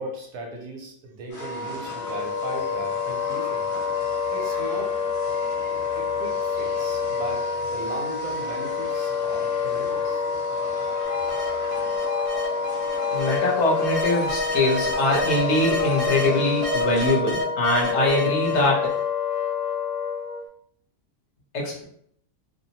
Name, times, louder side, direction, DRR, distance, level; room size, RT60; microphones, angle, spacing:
voice 1, 0.0-3.7 4.3-4.9 5.9-10.3, right 2 dB, 75° right, 0 dB, 1.2 m, -37 dB
Wind instrument woodwind instrument, 1.3-20.4, left 5 dB, 80° left, 0.5 m, -27 dB
sound 1, 1.3-17.2, equal, 30° left, 0.7 m, -41 dB
sound 2, 11.0-13.4 13.8-16.3 16.6-19.0, left 2 dB, 50° right, 0.9 m, -30 dB
voice 2, 13.1-18.9 21.5-21.8, left 1 dB, 55° left, -3 dB, 0.9 m, -23 dB
2.7 x 2.0 x 2.8 m, 0.67 s
omnidirectional pair, 1.7 m